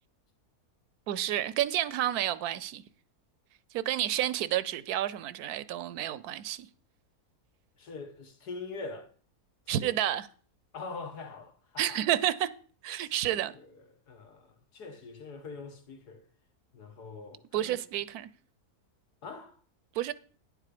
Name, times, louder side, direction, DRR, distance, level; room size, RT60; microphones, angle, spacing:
voice 1, 1.1-2.8 3.7-6.7 9.7-10.3 11.8-12.5 12.8-13.5 17.5-18.3 19.9-20.1, right 12 dB, 75° right, 1.1 m, -30 dB
voice 2, 7.8-9.1 9.8-9.9 10.7-12.0 13.0-13.7 14.1-16.2 16.7-17.8 19.2-19.6, left 3 dB, 85° left, 2.0 m, -43 dB
10.0 x 7.6 x 5.0 m
omnidirectional pair, 1.7 m